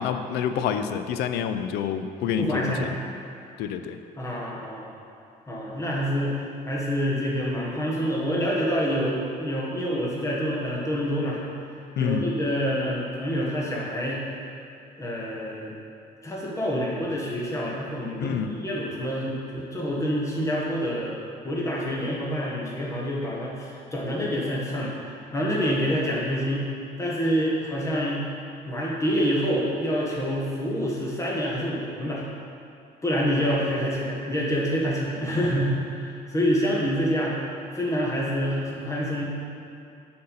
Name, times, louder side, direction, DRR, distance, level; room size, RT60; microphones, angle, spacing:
voice 1, 0.0-2.9 3.6-4.0 12.0-12.2 18.2-18.5, left 8 dB, 75° left, 9 dB, 0.4 m, -27 dB
voice 2, 2.4-2.9 4.1-4.9 5.5-6.4 6.7-11.4 11.7-14.2 15.0-15.7 16.2-21.2 21.4-26.7 27.0-28.2 28.6-32.2 33.0-37.3 37.7-39.2, equal, 15° left, -4 dB, 1.3 m, -27 dB
6.4 x 4.3 x 3.9 m, 2.6 s
cardioid pair, 110°, 17 cm